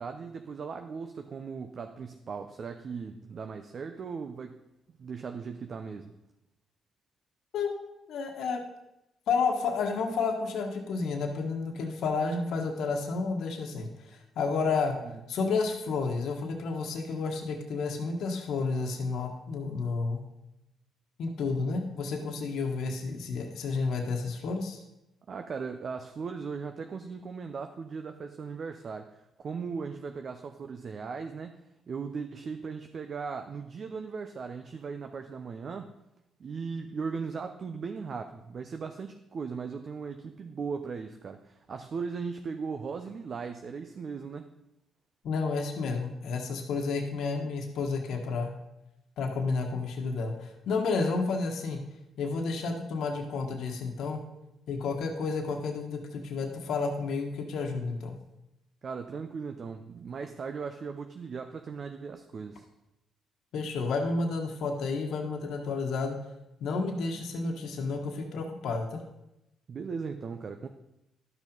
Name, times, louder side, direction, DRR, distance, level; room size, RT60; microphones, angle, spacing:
voice 1, 0.0-4.6 5.0-6.1 15.0-15.1 25.3-31.6 31.9-35.9 36.4-44.5 58.8-62.6 69.7-70.7, right 5 dB, 50° right, 6 dB, 0.6 m, -38 dB
voice 2, 8.1-8.6 9.3-14.9 15.3-20.2 21.2-24.8 45.2-48.5 49.2-51.8 52.2-54.2 54.7-58.2 63.5-66.2 66.6-69.0, left 4 dB, 75° left, 3 dB, 1.3 m, -31 dB
11.5 x 6.0 x 5.3 m, 0.90 s
cardioid pair, 90°, 0 cm